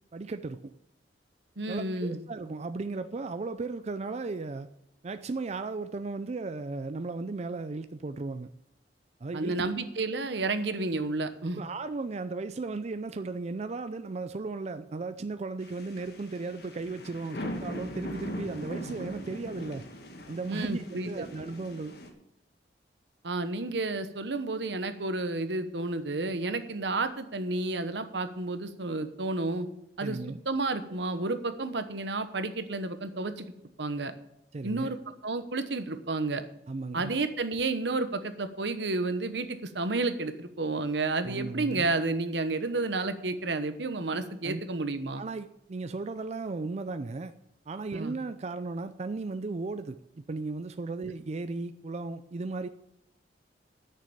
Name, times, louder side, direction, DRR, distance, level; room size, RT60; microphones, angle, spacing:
voice 1, 0.1-0.7 1.7-4.7 5.0-8.5 9.2-9.7 11.5-19.8 20.3-21.9 30.0-30.4 34.5-34.9 36.7-37.2 41.2-41.9 44.4-44.6 45.1-47.3 47.7-52.7, right 3 dB, 40° right, 10 dB, 0.4 m, -36 dB
voice 2, 1.6-2.2 9.3-11.6 20.5-21.2 23.2-29.7 30.0-30.2 30.4-33.5 33.8-34.1 34.6-35.0 35.2-36.4 36.9-45.2 47.9-48.1, right 3 dB, 75° right, 10 dB, 1.1 m, -31 dB
sound 1, 15.6-22.1, equal, 65° left, 1.9 m, -40 dB
9.7 x 6.7 x 8.5 m, 0.81 s
head